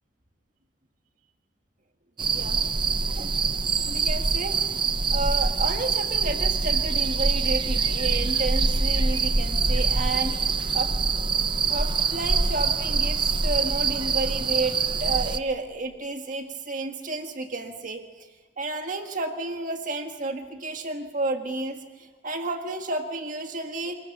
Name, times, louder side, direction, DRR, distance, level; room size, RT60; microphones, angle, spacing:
sound 1, 2.2-15.4, right 4 dB, 25° right, 0.8 m, -24 dB
voice 1, 2.2-2.6 3.1-3.4 3.8-4.6 5.1-10.9 11.7-18.1 18.6-24.0, right 2 dB, 45° right, 5 dB, 1.7 m, -31 dB
27.5 x 19.5 x 7.3 m, 1.5 s
head